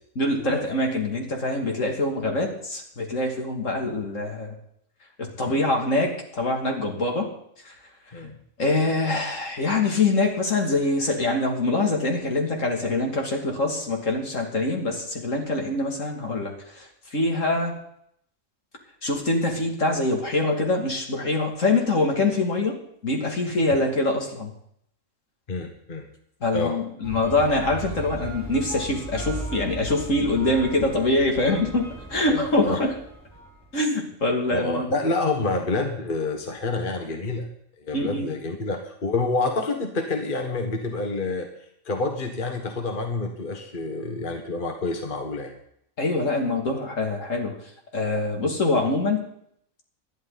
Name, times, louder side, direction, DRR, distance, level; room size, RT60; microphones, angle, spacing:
voice 1, 0.1-4.5 5.2-7.3 7.6-7.7 8.6-17.7 19.0-24.5 26.4-32.9 33.7-35.0 37.9-38.3 46.0-47.6 47.9-49.2, left 2 dB, 65° left, 1 dB, 3.0 m, -24 dB
voice 2, 25.5-26.1 26.5-26.7 32.3-32.8 34.5-37.5 37.8-41.5 41.9-45.5, left 3 dB, 40° left, 4 dB, 1.6 m, -28 dB
sound 1, 27.0-33.7, right 1 dB, ahead, 6.4 m, -37 dB
20.0 x 12.0 x 4.1 m, 0.69 s
omnidirectional pair, 1.5 m